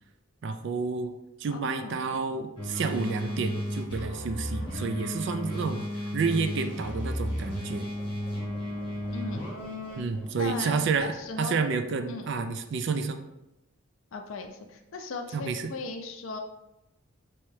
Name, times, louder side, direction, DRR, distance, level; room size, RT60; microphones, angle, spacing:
voice 1, 0.4-1.1 1.4-5.8 6.1-7.9 10.0-11.1 11.4-13.2 15.3-15.6, right 4 dB, 55° right, 8 dB, 0.3 m, -30 dB
voice 2, 1.5-2.0 9.1-9.5 10.4-11.6 12.1-12.3 14.1-16.4, left 3 dB, 70° left, 5 dB, 0.4 m, -38 dB
sound 1, 2.6-10.0, equal, 25° left, 1.2 m, -33 dB
sound 2, 6.9-11.2, right 1 dB, 5° left, 0.7 m, -50 dB
4.4 x 3.0 x 3.2 m, 0.91 s
head